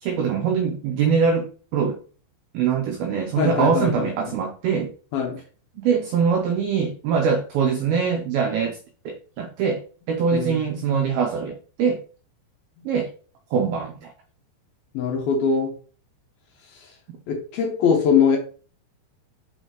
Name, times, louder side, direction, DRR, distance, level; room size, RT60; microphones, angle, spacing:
voice 1, 0.0-2.0 2.5-4.9 5.8-8.8 9.1-9.8 10.1-12.0 12.9-13.1 13.5-14.1, right 6 dB, 85° right, 2.1 m, -23 dB
voice 2, 3.4-4.3 5.1-5.4 10.3-10.6 14.9-15.7 16.7-16.9 17.3-18.4, left 6 dB, 70° left, 2.4 m, -22 dB
6.3 x 5.5 x 3.0 m
omnidirectional pair, 5.2 m